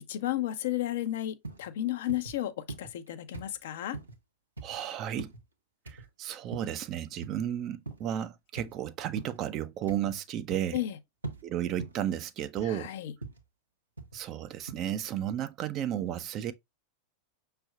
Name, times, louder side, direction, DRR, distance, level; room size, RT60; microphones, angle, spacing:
voice 1, 0.0-4.0 10.7-11.0 12.6-13.1, left 13 dB, 55° left, 0.6 m, -33 dB
sound 1, 1.4-1.7 2.1-2.4 2.7-3.1 3.3-3.5 3.9-4.2 4.6-4.8 5.2-5.4 5.9-6.1 6.5-6.8 7.2-7.4 7.9-8.1 8.6-8.8 9.2-9.4 9.9-10.2 10.5-10.8 11.2-11.4 11.8-12.1 12.5-12.8 13.2-13.4 14.0-14.2 14.7-14.8, right 3 dB, 80° right, 1.1 m, -42 dB
voice 2, 4.6-5.3 5.9-10.8 11.4-12.9 14.1-16.5, right 10 dB, 35° right, 0.6 m, -33 dB
6.1 x 3.3 x 2.3 m
figure-of-eight pair, 90°, 0 cm